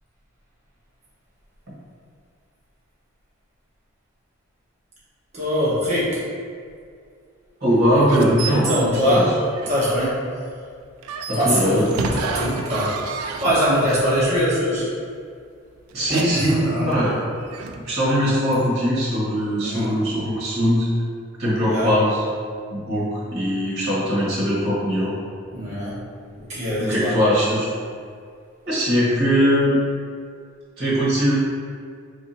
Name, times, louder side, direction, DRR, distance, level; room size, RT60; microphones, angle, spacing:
voice 1, 5.3-6.2 7.9-8.0 8.4-9.3 9.7-10.2 11.3-14.9 16.3-17.0 19.6-20.0 21.6-21.9 25.5-26.0 26.4-27.2, equal, 30° right, -9 dB, 1.1 m, -23 dB
voice 2, 7.6-9.3 11.3-11.9 15.9-17.1 17.7-20.9 21.4-22.2 22.7-25.1 26.8-27.7 28.6-29.8 30.8-31.4, equal, 50° right, -9 dB, 1.3 m, -21 dB
sound 1, 8.0-10.0 11.0-14.1 15.9-17.9, right 4 dB, 85° right, 0.4 m, -31 dB
3.7 x 3.2 x 2.8 m, 2.2 s
head